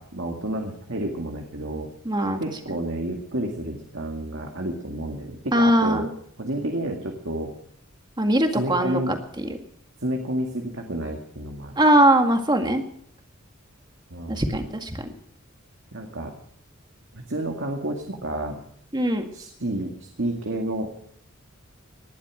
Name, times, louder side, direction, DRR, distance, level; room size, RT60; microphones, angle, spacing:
voice 1, 0.0-1.9 2.4-6.1 6.4-7.5 8.5-9.1 10.0-11.8 14.1-14.5 15.9-16.4 17.1-18.6 19.3-20.9, right 1 dB, 65° right, 2 dB, 2.1 m, -30 dB
voice 2, 2.1-2.4 5.5-6.1 8.2-9.5 11.8-12.8 14.3-15.0 18.9-19.3, right 1 dB, 20° right, 5 dB, 1.9 m, -21 dB
19.0 x 11.5 x 6.3 m, 0.66 s
head